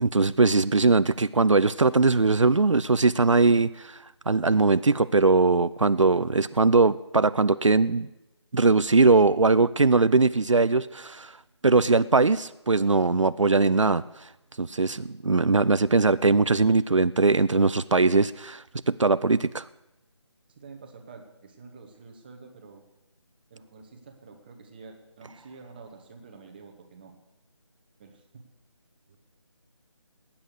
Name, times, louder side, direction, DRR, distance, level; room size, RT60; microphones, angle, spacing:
voice 1, 0.0-4.0 4.3-8.1 8.5-11.3 11.6-14.0 14.6-19.7, right 3 dB, 85° right, 16 dB, 0.5 m, -21 dB
voice 2, 20.5-22.8 23.5-27.1 28.0-28.4 29.1-29.2, right 4 dB, 20° right, 4 dB, 1.2 m, -48 dB
18.5 x 8.8 x 6.5 m, 0.93 s
figure-of-eight pair, 160°, 16 cm